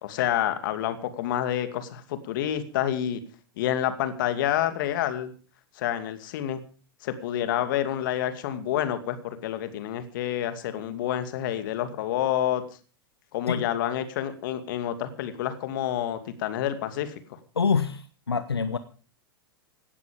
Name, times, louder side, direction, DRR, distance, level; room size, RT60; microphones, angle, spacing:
voice 1, 0.0-3.2 3.6-5.3 5.8-6.6 7.0-12.6 13.3-17.4, left 11 dB, 55° left, 10 dB, 2.5 m, -28 dB
voice 2, 17.6-18.8, left 5 dB, 85° left, 12 dB, 1.1 m, -26 dB
17.5 x 12.5 x 5.2 m, 0.38 s
figure-of-eight pair, 100°, 13 cm